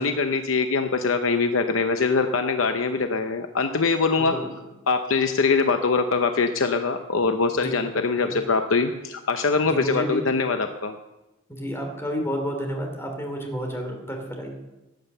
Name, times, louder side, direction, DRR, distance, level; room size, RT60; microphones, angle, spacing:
voice 1, 0.0-4.3 4.9-10.9, left 4 dB, 65° left, 7 dB, 0.8 m, -23 dB
voice 2, 9.7-10.2 11.5-14.5, equal, 10° left, 3 dB, 3.1 m, -30 dB
17.0 x 9.2 x 6.8 m, 1.0 s
head